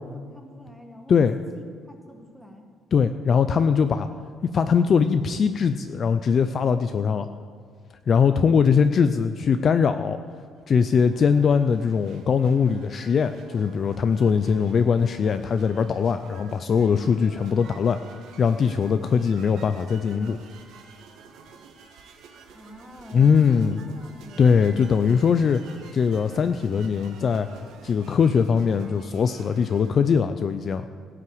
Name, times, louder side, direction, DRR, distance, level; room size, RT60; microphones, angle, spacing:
voice 1, 0.0-1.2 1.6-2.6 22.3-24.9, equal, ahead, 3 dB, 1.3 m, -46 dB
voice 2, 1.1-1.4 2.9-4.1 4.5-7.3 8.1-10.2 10.7-18.0 18.4-20.4 23.1-23.8 24.4-25.6 25.9-27.5 27.8-30.8, left 6 dB, 35° left, 10 dB, 0.4 m, -21 dB
sound 1, 10.6-29.9, right 5 dB, 70° right, 1.6 m, -49 dB
16.5 x 5.8 x 7.8 m, 2.1 s
cardioid pair, 155°, 0 cm